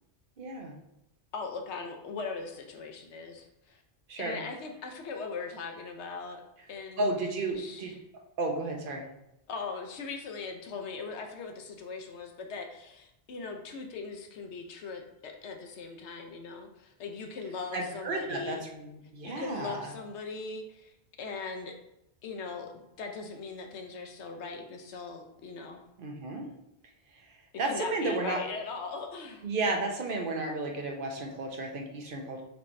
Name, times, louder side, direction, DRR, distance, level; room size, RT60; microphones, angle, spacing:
voice 1, 0.4-0.7 4.1-4.4 7.0-7.9 8.4-9.1 17.7-19.9 26.0-26.5 27.6-28.4 29.4-32.4, right 2 dB, 55° right, 1 dB, 0.9 m, -33 dB
voice 2, 1.3-3.8 4.2-6.4 6.7-7.0 7.5-8.0 9.5-18.6 19.2-21.7 22.2-25.8 27.6-29.5, left 4 dB, 85° left, 3 dB, 1.0 m, -40 dB
6.4 x 3.1 x 2.6 m, 0.83 s
omnidirectional pair, 1.1 m